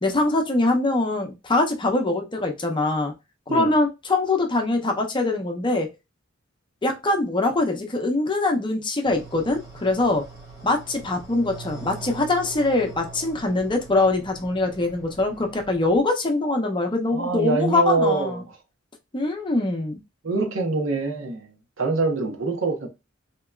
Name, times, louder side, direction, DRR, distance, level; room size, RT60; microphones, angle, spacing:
voice 1, 0.0-3.1 3.5-5.9 6.8-10.2 10.6-18.4 19.1-20.0, left 2 dB, 25° left, 0.6 m, -23 dB
sound 1, 9.0-16.0, right 4 dB, 15° right, 1.3 m, -42 dB
voice 2, 17.1-18.6 20.2-22.9, right 3 dB, 70° right, 1.0 m, -25 dB
3.4 x 2.9 x 2.3 m
head